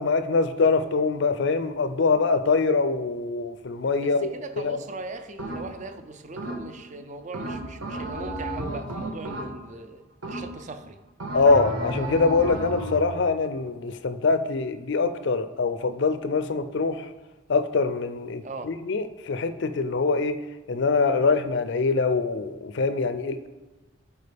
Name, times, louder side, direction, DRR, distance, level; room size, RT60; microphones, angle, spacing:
voice 1, 0.0-4.8 11.3-17.1 17.5-20.4 20.7-23.5, left 4 dB, 60° left, 11 dB, 0.5 m, -24 dB
voice 2, 4.0-11.0 18.4-18.7, right 3 dB, 35° right, 8 dB, 0.5 m, -39 dB
sound 1, 5.4-5.9 6.4-6.9 7.3-9.8 10.2-10.8 11.2-13.1, right 1 dB, 85° right, 1.3 m, -33 dB
11.0 x 4.5 x 3.5 m, 1.2 s
head